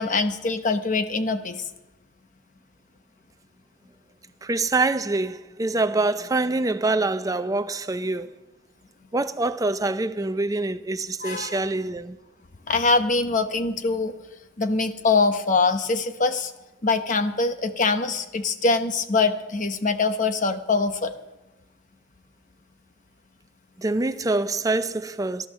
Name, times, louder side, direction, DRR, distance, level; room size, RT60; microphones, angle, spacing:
voice 1, 0.0-1.7 11.2-11.6 12.7-14.1 14.6-16.5 16.8-21.1, left 3 dB, 40° left, 0.9 m, -23 dB
voice 2, 4.4-8.3 9.1-12.2 23.8-25.5, right 2 dB, 15° right, 0.5 m, -25 dB
16.0 x 11.5 x 6.4 m
head